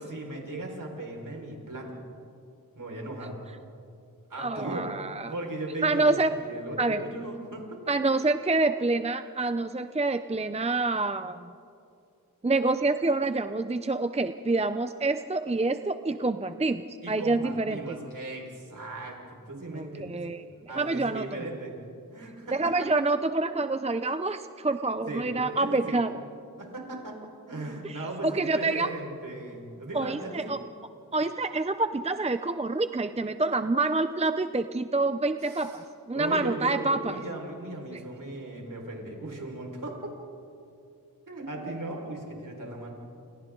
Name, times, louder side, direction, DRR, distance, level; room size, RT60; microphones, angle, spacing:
voice 1, 0.0-2.0 2.8-3.4 4.3-4.9 5.3-6.0 6.4-7.8 17.0-20.2 20.7-21.8 22.1-22.7 25.1-26.0 26.6-27.2 27.5-30.5 35.4-35.8 36.1-40.1 41.3-42.9, right 2 dB, 60° right, 0 dB, 5.2 m, -37 dB
voice 2, 4.4-5.3 5.8-6.3 6.8-7.0 7.9-11.5 12.4-17.8 19.7-21.2 22.5-26.1 27.8-28.9 29.9-30.6 31.1-37.2 37.9-38.0, right 3 dB, 20° right, 10 dB, 0.6 m, -27 dB
29.0 x 28.5 x 3.9 m, 2.5 s
wide cardioid pair, 85°, 37 cm